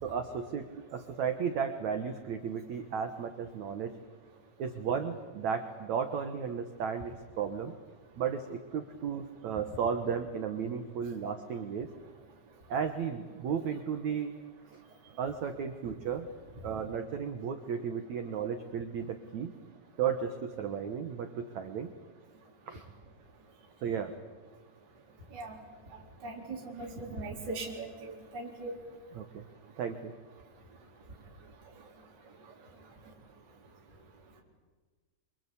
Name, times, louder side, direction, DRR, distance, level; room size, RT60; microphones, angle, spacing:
voice 1, 0.0-3.9 4.6-7.8 8.2-11.9 12.7-14.3 14.7-14.8 15.2-16.3 16.6-19.5 20.0-21.9 22.7-22.8 23.8-24.1 29.1-29.4 29.8-30.1, right 7 dB, 80° right, 7 dB, 1.6 m, -34 dB
voice 2, 26.2-28.7, right 2 dB, 25° right, -2 dB, 4.1 m, -39 dB
26.5 x 26.0 x 8.5 m, 1.4 s
omnidirectional pair, 5.4 m